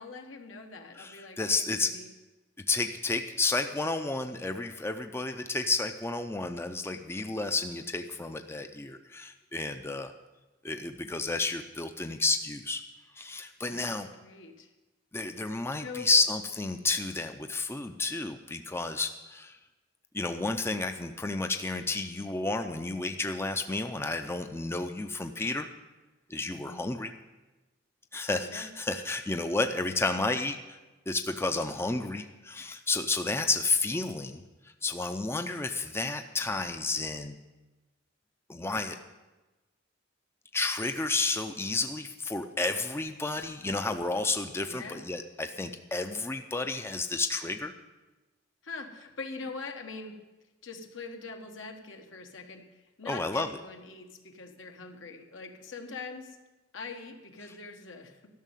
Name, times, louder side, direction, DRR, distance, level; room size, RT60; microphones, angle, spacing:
voice 1, 0.0-2.0 13.6-14.7 15.8-16.1 26.5-26.8 28.4-28.7 44.7-45.1 48.6-50.2 50.6-56.4 56.7-58.2, left 4 dB, 75° left, 4 dB, 1.4 m, -43 dB
voice 2, 1.0-1.9 2.7-10.1 10.6-12.8 13.1-14.1 15.1-19.6 20.1-25.7 26.3-27.1 28.1-30.8 31.1-34.4 34.8-37.4 38.5-39.0 40.5-47.7 53.1-53.5, left 3 dB, 15° left, 7 dB, 0.5 m, -31 dB
13.0 x 6.5 x 9.1 m, 1.1 s
head